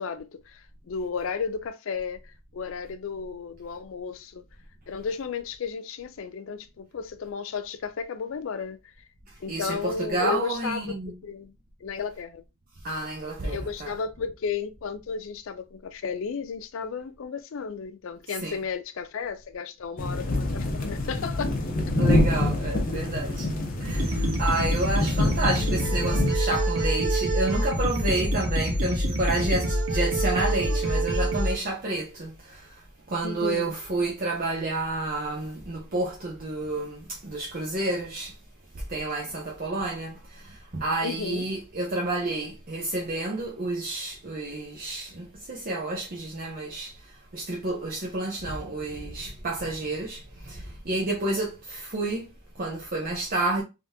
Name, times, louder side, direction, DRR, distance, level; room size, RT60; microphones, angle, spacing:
voice 1, 0.0-2.2 2.5-4.4 4.9-8.8 9.4-11.0 11.2-11.5 11.8-12.4 13.4-21.6 33.2-33.7 41.0-41.4, left 5 dB, 65° left, 0.4 m, -33 dB
voice 2, 9.3-11.2 12.8-13.9 18.4-18.6 22.0-23.5 23.8-38.4 38.7-53.6, right 2 dB, 40° right, 0.7 m, -30 dB
sound 1, 20.0-26.3, left 2 dB, 40° left, 0.8 m, -26 dB
sound 2, 23.9-31.6, right 1 dB, 85° right, 1.1 m, -26 dB
3.7 x 3.5 x 2.6 m
head